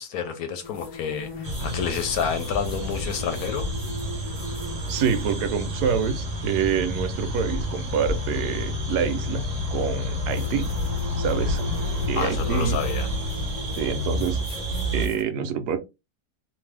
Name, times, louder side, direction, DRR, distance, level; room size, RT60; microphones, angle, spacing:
voice 1, 0.0-3.7 12.1-13.1, left 7 dB, 70° left, 1.0 m, -29 dB
sound 1, 0.6-6.1 8.2-8.3 10.3-15.2, left 1 dB, 50° left, 0.5 m, -41 dB
sound 2, 1.4-15.1, left 1 dB, 35° right, 0.6 m, -29 dB
voice 2, 4.9-9.4 9.7-10.7 11.2-11.6 12.1-12.8 13.7-14.4 14.9-15.8, right 7 dB, 75° right, 1.1 m, -26 dB
2.6 x 2.6 x 3.2 m
omnidirectional pair, 1.8 m